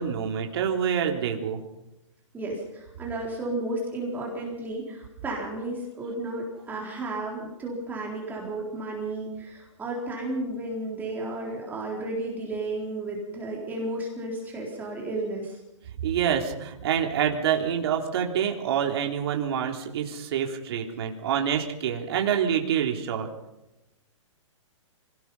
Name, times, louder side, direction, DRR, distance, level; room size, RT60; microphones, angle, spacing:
voice 1, 0.0-1.6 16.0-23.3, right 8 dB, 50° right, 2 dB, 3.4 m, -26 dB
voice 2, 2.3-15.6, right 2 dB, 10° right, -2 dB, 4.0 m, -33 dB
26.0 x 18.5 x 5.5 m, 0.93 s
hypercardioid pair, 155°, 17 cm